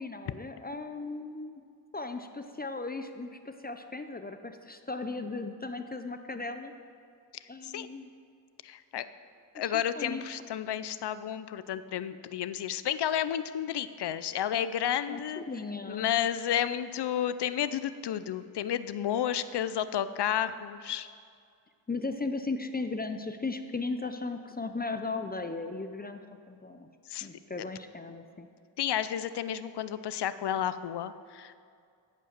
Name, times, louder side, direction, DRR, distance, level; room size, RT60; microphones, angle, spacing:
voice 1, 0.0-1.6 1.9-6.7 7.5-8.1 9.5-9.6 10.0-10.2 15.1-16.1 21.9-26.2 26.5-26.9 27.2-28.5, left 3 dB, 20° left, 7 dB, 0.6 m, -36 dB
voice 2, 8.6-9.0 9.5-15.4 15.9-21.1 27.1-27.3 28.8-31.5, left 10 dB, 60° left, 13 dB, 0.6 m, -31 dB
14.5 x 5.3 x 6.7 m, 2.3 s
cardioid pair, 80°, 45 cm